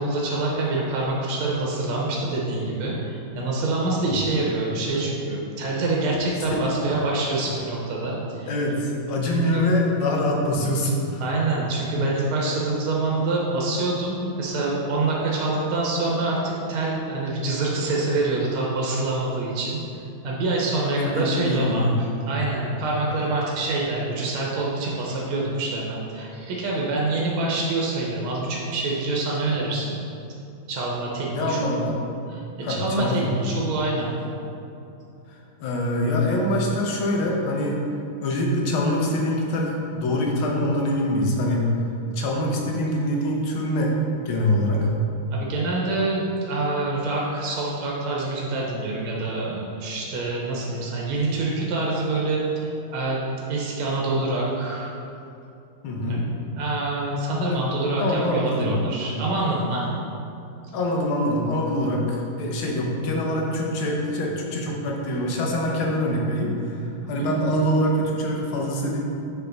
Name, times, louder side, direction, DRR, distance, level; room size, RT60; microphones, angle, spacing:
voice 1, 0.0-8.5 9.5-9.7 11.2-19.8 20.2-30.0 30.7-31.8 32.3-32.4 32.7-34.1 45.3-53.2 53.5-54.9 56.1-56.2 56.5-59.9 67.0-67.3, right 2 dB, 85° right, -3 dB, 1.7 m, -26 dB
voice 2, 8.5-11.2 21.0-22.0 22.3-22.5 31.3-32.0 32.6-33.3 35.3-37.8 38.2-41.7 42.1-44.0 44.3-44.8 55.8-56.3 57.5-57.6 58.0-58.8 60.7-69.0, left 1 dB, 85° left, -1 dB, 1.8 m, -24 dB
7.0 x 4.5 x 3.9 m, 2.7 s
omnidirectional pair, 2.2 m